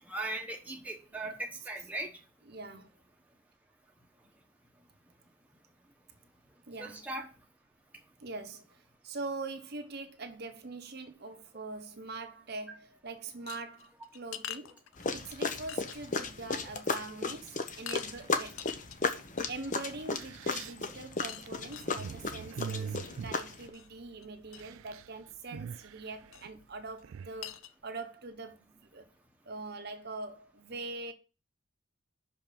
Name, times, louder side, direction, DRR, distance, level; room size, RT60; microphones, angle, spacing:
voice 1, 0.1-2.1 6.8-7.3, right 2 dB, 5° right, 1.1 m, -38 dB
voice 2, 2.5-2.9 6.7-7.1 8.2-14.8 15.1-18.7 19.5-29.0 29.4-31.1, right 3 dB, 50° right, 1.0 m, -43 dB
sound 1, 13.5-15.3 15.7-16.3 16.6-16.7 17.1-17.3 17.9-18.1 18.5-19.6 20.8-22.1 23.7-23.9 24.2-24.3 24.5-24.6 26.3-26.5 27.0-27.1 27.4-27.7, left 10 dB, 75° left, 0.6 m, -45 dB
sound 2, 15.0-23.7, left 4 dB, 35° left, 0.9 m, -35 dB
sound 3, 18.1-18.7 19.5-19.6 19.9-24.2 24.4-25.1 25.3-27.4, right 7 dB, 70° right, 0.3 m, -43 dB
6.0 x 5.7 x 6.7 m
head